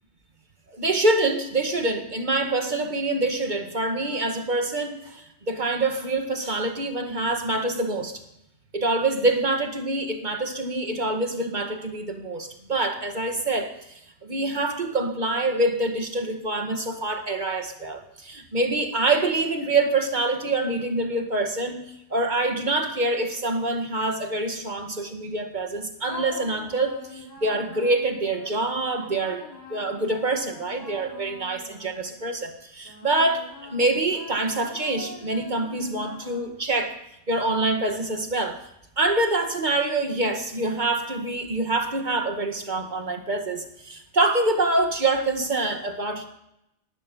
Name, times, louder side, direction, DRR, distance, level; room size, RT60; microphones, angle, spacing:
voice 1, 0.7-8.2 8.7-21.9 22.1-37.0 37.3-38.6 39.0-46.3, right 2 dB, 40° right, 5 dB, 2.0 m, -26 dB
sound 1, 26.0-32.3 32.8-36.8, left 1 dB, 35° left, 5.3 m, -43 dB
19.5 x 12.5 x 5.5 m, 0.83 s
omnidirectional pair, 1.2 m